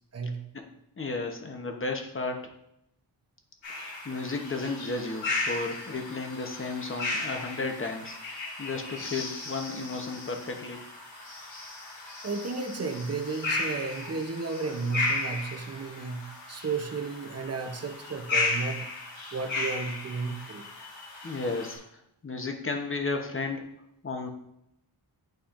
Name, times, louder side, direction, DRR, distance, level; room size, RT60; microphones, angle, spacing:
voice 1, 1.0-2.5 3.7-8.2 8.6-10.8 21.2-21.8 22.2-23.7 24.0-24.3, left 3 dB, 25° left, 3 dB, 0.9 m, -33 dB
sound 1, 3.6-21.7, left 3 dB, 75° left, 2.5 m, -35 dB
voice 2, 12.2-18.9 19.3-20.6, right 4 dB, 35° right, 4 dB, 0.7 m, -33 dB
10.0 x 4.3 x 2.5 m, 0.78 s
wide cardioid pair, 140°, 45 cm